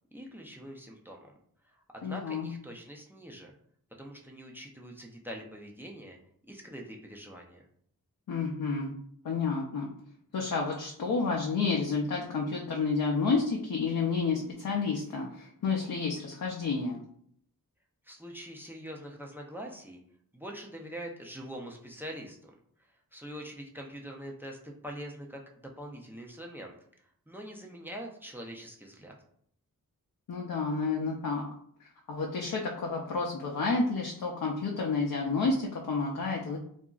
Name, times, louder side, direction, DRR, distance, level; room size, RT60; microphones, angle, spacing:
voice 1, 0.1-1.3 1.6-3.5 4.0-6.2 6.5-7.6 18.0-20.0 20.3-22.5 23.1-26.7 27.3-29.2, equal, 5° right, 1 dB, 0.4 m, -44 dB
voice 2, 2.0-2.5 8.3-8.9 9.2-9.9 10.3-17.0 30.3-31.4 32.1-36.6, left 4 dB, 60° left, -1 dB, 0.5 m, -30 dB
2.8 x 2.5 x 2.3 m, 0.65 s
wide cardioid pair, 65°, 37 cm